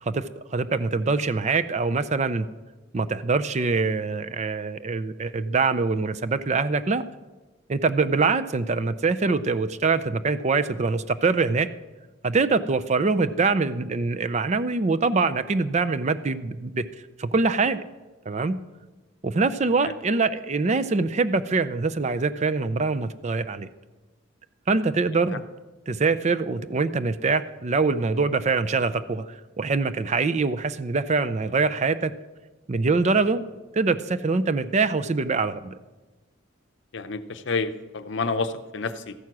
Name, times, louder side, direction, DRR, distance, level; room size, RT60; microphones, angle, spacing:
voice 1, 0.0-2.5 2.9-7.0 7.7-11.7 12.2-16.8 17.2-17.8 18.3-18.6 19.2-23.7 24.7-25.4 25.9-32.1 32.7-33.4 33.7-35.7, right 4 dB, 35° right, 13 dB, 0.4 m, -24 dB
voice 2, 36.9-39.1, left 4 dB, 60° left, 11 dB, 0.7 m, -29 dB
14.0 x 9.3 x 6.0 m, 1.2 s
head